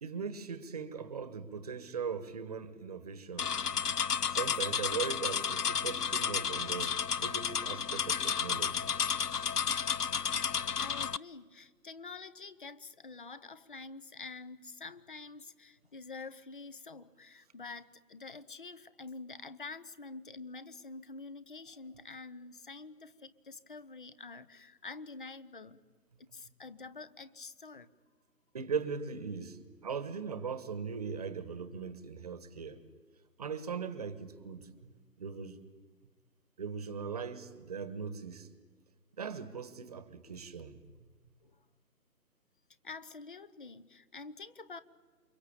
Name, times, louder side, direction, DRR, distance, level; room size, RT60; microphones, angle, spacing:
voice 1, 0.0-3.5 4.3-6.9 7.2-8.9 28.5-32.8 33.4-34.9 35.2-35.6 36.6-38.5 39.2-40.8, right 6 dB, 25° right, 1.4 m, -39 dB
sound 1, 3.4-11.2, left 7 dB, 75° left, 0.8 m, -32 dB
voice 2, 10.8-25.8 26.2-27.9 41.4-41.7 42.8-44.8, left 4 dB, 35° left, 1.0 m, -47 dB
28.5 x 24.0 x 8.7 m
figure-of-eight pair, 155°, 47 cm